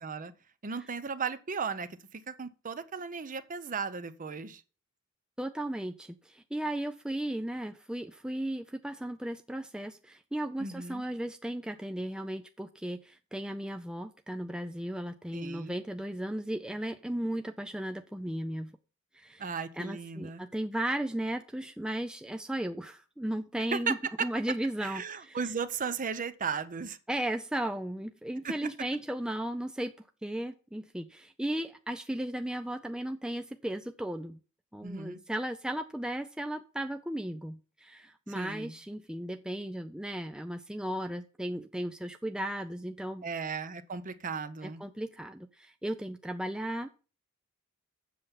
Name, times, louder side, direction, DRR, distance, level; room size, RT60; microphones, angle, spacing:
voice 1, 0.0-0.3 0.6-4.6 10.6-11.0 15.3-15.8 19.4-20.4 23.7-23.9 24.8-27.0 28.4-28.6 34.8-35.2 38.3-38.8 43.2-44.8, right 5 dB, 40° right, 0.7 m, -36 dB
voice 2, 5.4-18.8 19.1-25.4 27.1-29.9 30.2-34.4 34.7-43.2 44.6-46.9, right 1 dB, 5° right, 0.4 m, -35 dB
7.6 x 7.0 x 5.3 m
head